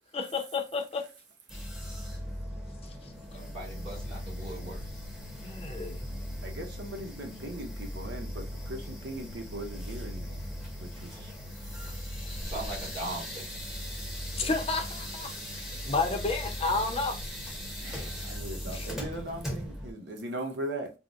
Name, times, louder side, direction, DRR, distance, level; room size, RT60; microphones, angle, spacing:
voice 1, 0.1-1.0 5.4-6.1 14.4-17.2 18.6-18.9, left 3 dB, 35° left, 0.6 m, -31 dB
sound 1, 1.5-19.9, equal, ahead, 0.8 m, -38 dB
voice 2, 3.3-4.8 12.4-13.5, right 1 dB, 35° right, 1.2 m, -39 dB
voice 3, 6.4-10.4 10.8-11.3 17.8-20.9, right 1 dB, 80° right, 0.9 m, -39 dB
3.8 x 2.1 x 2.5 m
head